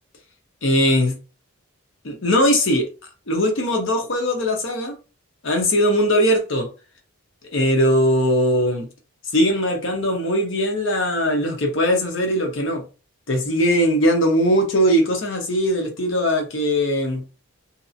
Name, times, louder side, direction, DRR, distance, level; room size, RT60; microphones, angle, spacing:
voice 1, 0.6-1.2 2.0-2.9 3.3-5.0 5.4-6.7 7.5-8.9 9.3-12.8 13.3-17.2, equal, 60° left, 0.8 m, -20 dB
2.7 x 2.4 x 2.6 m
head